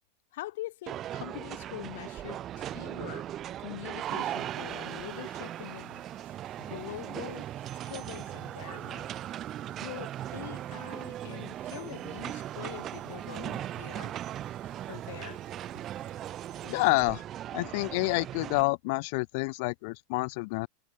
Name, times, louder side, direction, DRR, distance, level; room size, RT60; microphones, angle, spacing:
voice 1, 0.3-3.3 3.6-6.0 6.6-7.5 7.8-9.1 9.8-14.1 14.9-15.4, left 17 dB, 70° left, 2.0 m, -43 dB
sound 1, 0.9-18.6, right 12 dB, 30° right, 1.9 m, -38 dB
sound 2, 4.0-17.0, right 15 dB, 75° right, 6.8 m, -59 dB
voice 2, 16.6-17.2 17.5-20.7, left 28 dB, 55° left, 1.0 m, -28 dB
supercardioid pair, 155°, 0 cm